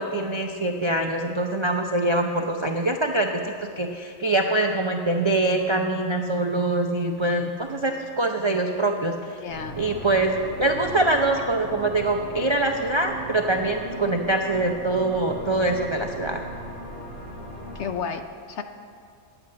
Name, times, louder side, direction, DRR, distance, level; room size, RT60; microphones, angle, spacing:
voice 1, 0.0-9.4 9.8-16.4, right 2 dB, 45° right, 3 dB, 0.3 m, -24 dB
voice 2, 9.4-9.8 17.7-18.6, left 6 dB, 60° left, 7 dB, 0.8 m, -32 dB
sound 1, 9.5-17.9, equal, 5° left, 2.9 m, -38 dB
10.0 x 8.7 x 7.7 m, 2.2 s
omnidirectional pair, 1.5 m